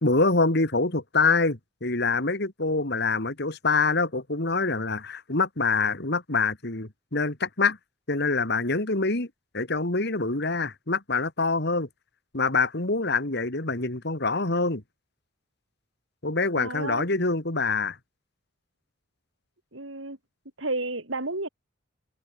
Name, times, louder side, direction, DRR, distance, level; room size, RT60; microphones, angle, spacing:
voice 1, 0.0-7.8 8.1-9.3 9.5-11.9 12.3-14.8 16.2-18.0, left 3 dB, 55° left, 2.7 m, -25 dB
voice 2, 16.6-17.0 19.7-20.2 20.6-21.5, right 2 dB, 75° right, 5.2 m, -31 dB
open air
head